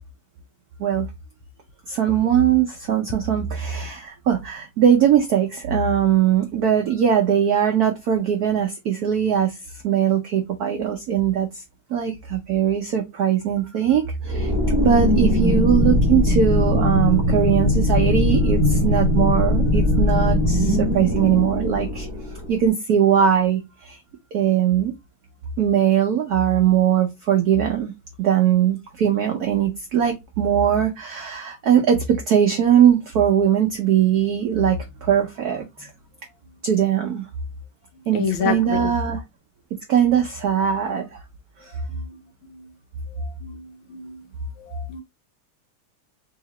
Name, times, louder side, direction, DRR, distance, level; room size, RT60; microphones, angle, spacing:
voice 1, 1.9-9.5 9.8-11.6 11.9-14.5 14.8-22.1 22.5-24.0 24.3-24.9 25.6-27.9 28.2-35.9 36.6-37.2 38.1-39.2 39.9-41.2, right 9 dB, 80° right, 0.8 m, -20 dB
sound 1, 14.3-22.5, left 1 dB, 20° right, 0.6 m, -20 dB
voice 2, 38.1-38.9 41.9-42.1 42.5-42.6 43.4-44.2 44.6-45.0, left 6 dB, 75° left, 1.4 m, -28 dB
4.0 x 2.8 x 2.8 m
omnidirectional pair, 2.4 m